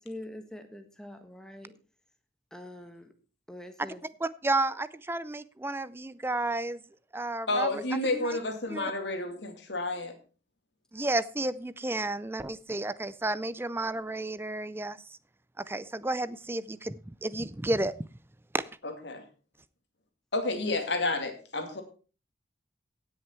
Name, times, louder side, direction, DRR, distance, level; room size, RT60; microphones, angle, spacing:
voice 1, 0.1-1.7 2.5-3.1 3.5-4.0, left 1 dB, 5° left, 1.5 m, -44 dB
voice 2, 4.2-6.8 7.1-7.7 8.1-8.4 8.7-8.9 10.9-15.0 15.6-17.9 18.5-18.6, right 2 dB, 15° right, 0.4 m, -32 dB
voice 3, 7.5-10.1 18.8-19.2 20.3-21.8, left 2 dB, 75° left, 2.4 m, -30 dB
17.0 x 6.5 x 4.5 m
head